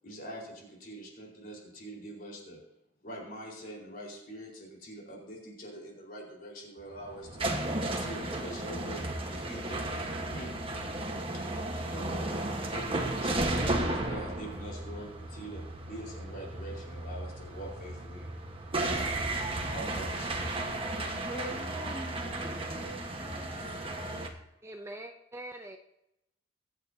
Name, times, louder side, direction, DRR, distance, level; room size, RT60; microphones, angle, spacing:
voice 1, 0.0-2.6 3.0-7.4 8.0-10.6 11.3-12.4 12.7-13.3 13.6-18.7 19.6-21.1, right 1 dB, 50° left, -2 dB, 4.7 m, -44 dB
sound 1, 6.8-24.3, right 1 dB, 30° right, 1.4 m, -34 dB
voice 2, 21.2-24.2, right 1 dB, 5° left, -3 dB, 2.1 m, -44 dB
voice 3, 24.6-25.8, right 1 dB, 15° right, 4 dB, 0.6 m, -43 dB
23.0 x 9.1 x 2.8 m, 0.86 s
head